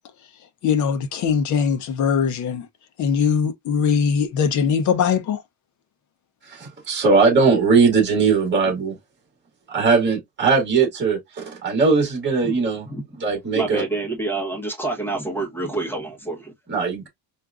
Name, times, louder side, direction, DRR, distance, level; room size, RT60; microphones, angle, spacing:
voice 1, 0.6-2.7 3.0-5.4, left 6 dB, 45° left, 0.7 m, -21 dB
voice 2, 6.5-9.0 9.7-12.9 13.2-13.8 16.7-17.1, right 4 dB, 25° right, 2.0 m, -19 dB
voice 3, 13.5-16.5, right 2 dB, 5° left, 1.0 m, -27 dB
4.7 x 2.5 x 2.4 m
cardioid pair, 170°, 41 cm